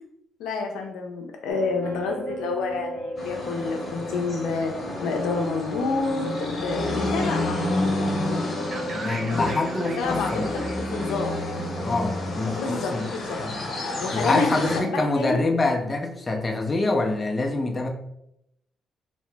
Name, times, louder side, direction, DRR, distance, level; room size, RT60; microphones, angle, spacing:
voice 1, 0.4-7.7 9.8-11.4 12.5-13.4 14.0-15.4, left 4 dB, 90° left, 2 dB, 0.5 m, -29 dB
sound 1, 1.5-10.6, equal, 80° right, 0.7 m, -35 dB
sound 2, 3.2-14.8, left 1 dB, 50° left, 1.0 m, -30 dB
sound 3, 8.7-12.6, right 3 dB, 45° right, 0.6 m, -40 dB
voice 2, 8.9-10.5 11.8-13.1 13.4-13.6 14.1-17.9, left 2 dB, 25° left, 2 dB, 0.5 m, -25 dB
2.8 x 2.0 x 3.3 m, 0.77 s
cardioid pair, 90°, 0 cm